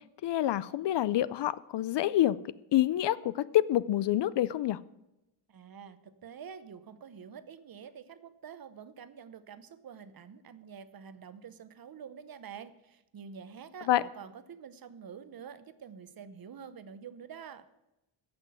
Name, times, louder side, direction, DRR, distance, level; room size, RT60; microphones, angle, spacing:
voice 1, 0.2-2.4 2.7-4.8 13.9-14.0, left 13 dB, 60° left, 18 dB, 0.5 m, -27 dB
voice 2, 5.5-17.7, right 7 dB, 45° right, 13 dB, 0.9 m, -47 dB
14.5 x 6.1 x 7.7 m, 0.93 s
wide cardioid pair, 145°, 49 cm